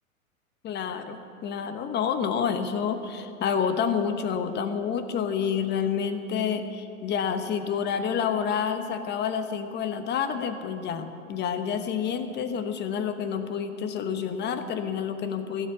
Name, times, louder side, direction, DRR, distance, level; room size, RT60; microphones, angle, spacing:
voice 1, 0.6-15.7, left 7 dB, 25° left, 9 dB, 1.1 m, -28 dB
16.5 x 7.9 x 9.7 m, 2.9 s
hypercardioid pair, 110°, 42 cm